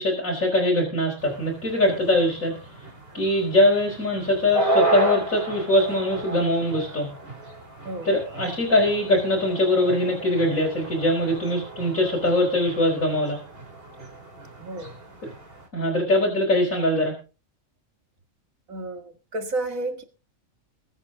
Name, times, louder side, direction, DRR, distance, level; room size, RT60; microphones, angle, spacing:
voice 1, 0.0-2.6 3.1-7.1 8.0-13.4 15.7-17.1, left 1 dB, 75° left, 4.5 m, -22 dB
sound 1, 1.2-15.7, right 2 dB, 45° right, 3.5 m, -33 dB
voice 2, 14.6-14.9 18.7-20.0, right 2 dB, 80° right, 2.3 m, -31 dB
21.5 x 8.9 x 3.8 m
omnidirectional pair, 1.4 m